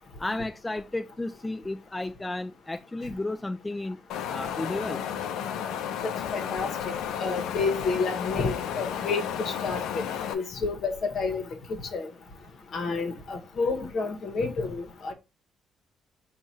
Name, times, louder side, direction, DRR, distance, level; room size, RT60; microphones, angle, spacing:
voice 1, 0.2-4.0 4.3-5.1, left 2 dB, 15° left, 0.3 m, -33 dB
Wind, 4.1-10.3, left 9 dB, 85° left, 0.5 m, -32 dB
voice 2, 6.3-10.0 10.3-11.4 11.7-12.1 12.7-15.1, left 4 dB, 60° left, 1.0 m, -30 dB
4.7 x 2.4 x 4.1 m
cardioid pair, 90°, 0 cm